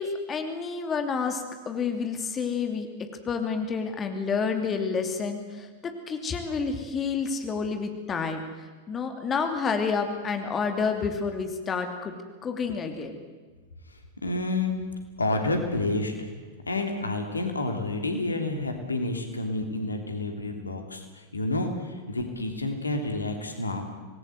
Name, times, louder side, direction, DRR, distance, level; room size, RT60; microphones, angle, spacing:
voice 1, 0.0-12.1 12.4-13.2, left 5 dB, 25° left, 6 dB, 2.9 m, -29 dB
voice 2, 14.2-14.7 15.2-16.1 16.7-23.9, left 2 dB, 80° left, 5 dB, 3.2 m, -29 dB
26.0 x 20.0 x 8.0 m, 1.3 s
figure-of-eight pair, 90°, 0 cm